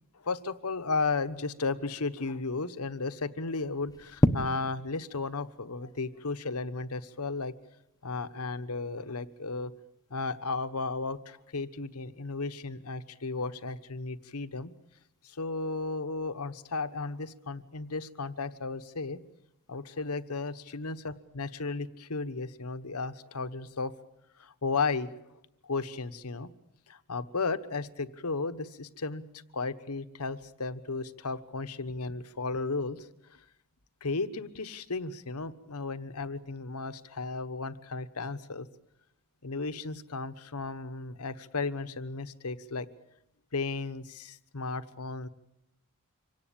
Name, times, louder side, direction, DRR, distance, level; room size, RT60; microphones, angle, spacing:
voice 1, 0.1-7.5 8.0-9.7 10.1-14.7 15.2-19.2 19.7-23.9 24.4-25.4 25.6-26.5 26.9-29.3 29.5-33.4 34.0-38.7 39.4-42.9 43.5-45.3, left 3 dB, 85° left, 12 dB, 1.2 m, -34 dB
sound 1, 3.6-20.7, left 1 dB, 15° left, 0.8 m, -39 dB
25.5 x 17.5 x 8.9 m, 0.84 s
head